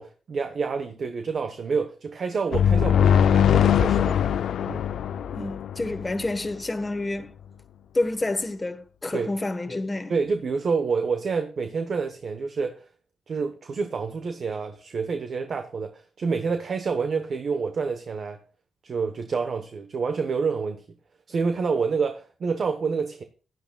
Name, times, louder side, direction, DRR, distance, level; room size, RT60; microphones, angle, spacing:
voice 1, 0.0-4.2 4.7-4.8 9.1-9.3 10.1-12.8 13.3-18.4 18.8-20.8 21.3-23.2, right 5 dB, 50° right, 1.0 m, -28 dB
sound 1, 2.5-6.3, left 8 dB, 75° left, 0.4 m, -21 dB
voice 2, 5.3-7.3 7.9-10.1, left 2 dB, 20° left, 1.2 m, -28 dB
16.0 x 11.0 x 2.3 m
cardioid pair, 115°, 0 cm